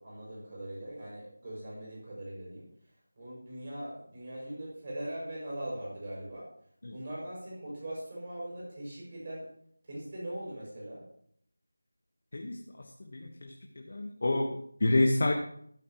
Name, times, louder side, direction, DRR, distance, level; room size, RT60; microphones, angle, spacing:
voice 1, 0.0-2.7 3.2-6.5 6.9-9.5 9.9-11.0, right 1 dB, 25° right, -5 dB, 6.3 m, -41 dB
voice 2, 12.3-12.9 13.1-15.3, left 2 dB, 40° left, 2 dB, 1.3 m, -29 dB
14.0 x 12.5 x 3.1 m, 0.66 s
figure-of-eight pair, 175°, 0 cm